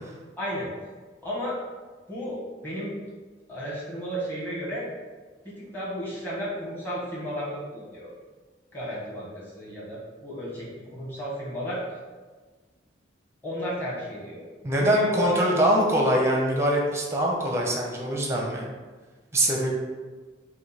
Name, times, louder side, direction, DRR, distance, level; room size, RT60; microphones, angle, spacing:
voice 1, 0.4-0.7 1.2-1.6 2.1-3.0 3.5-4.9 5.4-8.1 8.7-11.8 13.4-14.4 14.7-15.5 19.4-19.7, equal, 10° left, -7 dB, 1.3 m, -33 dB
voice 2, 14.6-18.7 19.3-19.7, right 1 dB, 15° right, -1 dB, 0.7 m, -23 dB
5.0 x 2.3 x 4.1 m, 1.4 s
head